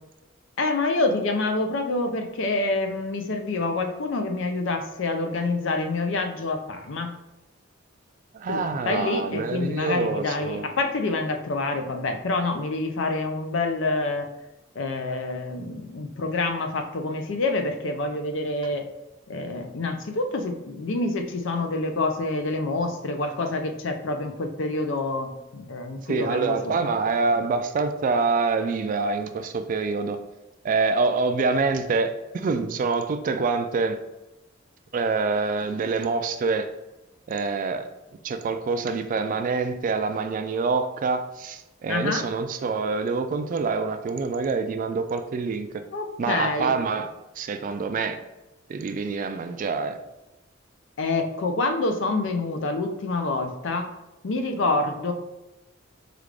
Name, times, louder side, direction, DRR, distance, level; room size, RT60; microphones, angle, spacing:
voice 1, 0.6-7.1 8.5-14.3 14.8-18.9 19.3-26.7 41.9-42.3 45.9-46.7 51.0-53.9 54.2-55.1, left 2 dB, 65° left, 0.5 m, -27 dB
voice 2, 8.3-10.7 26.1-30.2 30.6-34.0 34.9-36.7 37.3-37.9 38.2-45.7 46.2-47.1 47.4-48.2 48.7-50.0, right 4 dB, 40° right, 0.3 m, -26 dB
4.9 x 2.4 x 3.2 m
head